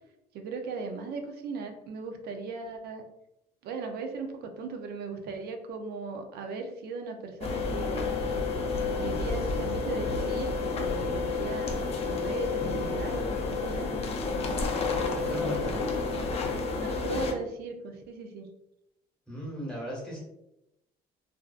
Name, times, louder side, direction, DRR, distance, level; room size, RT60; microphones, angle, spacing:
voice 1, 0.3-3.0 3.6-8.2 8.9-14.0 14.3-15.9 16.8-18.5, right 4 dB, 70° right, 5 dB, 0.5 m, -38 dB
sound 1, 7.4-17.3, left 4 dB, 35° left, 0.4 m, -30 dB
voice 2, 15.1-15.8 19.3-20.2, right 1 dB, 5° left, -5 dB, 1.1 m, -36 dB
2.5 x 2.2 x 2.3 m, 0.87 s
cardioid pair, 110°, 17 cm